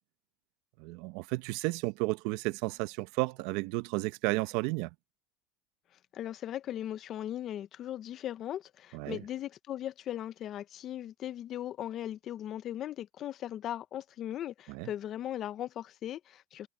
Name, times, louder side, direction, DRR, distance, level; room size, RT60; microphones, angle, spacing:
voice 1, 0.8-4.9 8.9-9.2 14.7-14.9, right 22 dB, 65° right, 0.7 m, -33 dB
voice 2, 6.1-16.7, left 11 dB, 40° left, 0.7 m, -38 dB
supercardioid pair, 130°, 0 cm